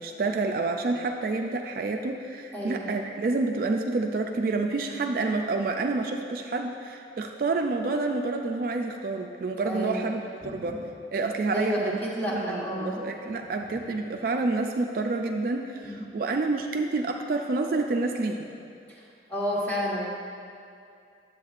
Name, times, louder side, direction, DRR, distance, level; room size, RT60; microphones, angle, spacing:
voice 1, 0.0-10.8 11.1-12.0 12.3-18.5, right 3 dB, 50° right, 3 dB, 0.3 m, -28 dB
voice 2, 2.5-2.9 9.6-10.1 10.4-10.8 11.5-13.0 15.8-16.1 19.3-20.1, equal, 10° left, -7 dB, 1.3 m, -30 dB
10.0 x 7.7 x 2.4 m, 2.5 s
head